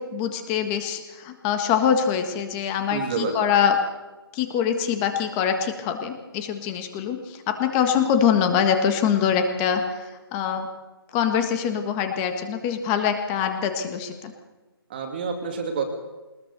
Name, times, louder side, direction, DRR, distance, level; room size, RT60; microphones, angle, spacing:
voice 1, 0.1-3.8 4.3-10.7 11.1-14.3, left 8 dB, 10° left, 6 dB, 1.6 m, -24 dB
voice 2, 2.9-3.5 14.9-15.9, right 5 dB, 25° right, 4 dB, 2.3 m, -28 dB
22.5 x 20.5 x 6.8 m, 1.2 s
hypercardioid pair, 170°, 13 cm